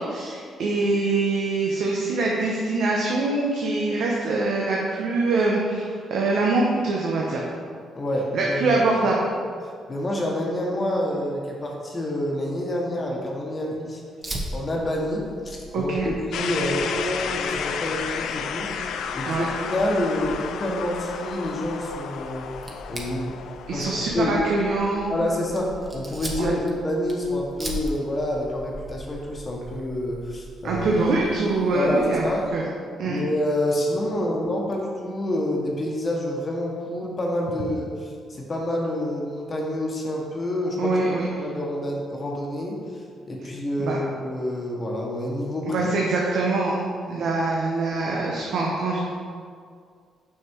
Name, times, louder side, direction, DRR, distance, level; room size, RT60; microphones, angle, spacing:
voice 1, 0.0-7.4 8.3-9.2 15.7-16.1 19.2-19.5 23.7-25.1 26.4-26.5 30.6-32.6 33.0-33.2 40.8-41.3 43.4-43.5 43.8-44.0 45.7-49.0, right 3 dB, 75° right, -3 dB, 0.9 m, -24 dB
voice 2, 7.9-8.8 9.9-14.0 14.5-18.7 19.2-22.5 22.9-23.3 23.7-23.8 24.1-24.4 25.1-30.9 31.7-32.4 33.0-37.9 38.3-41.0 41.4-42.8 43.3-45.8, left 1 dB, 30° left, -1 dB, 1.2 m, -27 dB
Fire, 14.2-32.5, right 1 dB, 25° right, 1.2 m, -40 dB
sound 1, 16.3-26.2, left 7 dB, 75° left, 0.4 m, -33 dB
6.2 x 5.8 x 4.6 m, 2.1 s
cardioid pair, 90°, 0 cm